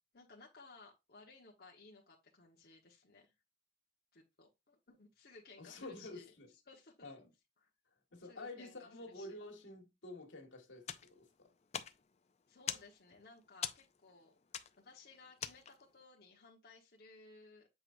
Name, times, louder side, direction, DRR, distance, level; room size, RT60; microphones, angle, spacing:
voice 1, 0.1-3.3 4.1-7.3 7.6-7.7 8.2-9.4 12.5-14.4 14.8-17.7, left 3 dB, 55° left, 1.2 m, -59 dB
voice 2, 5.6-6.5 7.0-7.3 8.1-11.5, left 2 dB, 85° left, 1.8 m, -49 dB
sound 1, 10.8-16.0, left 9 dB, 35° left, 0.4 m, -46 dB
7.8 x 4.6 x 2.6 m
head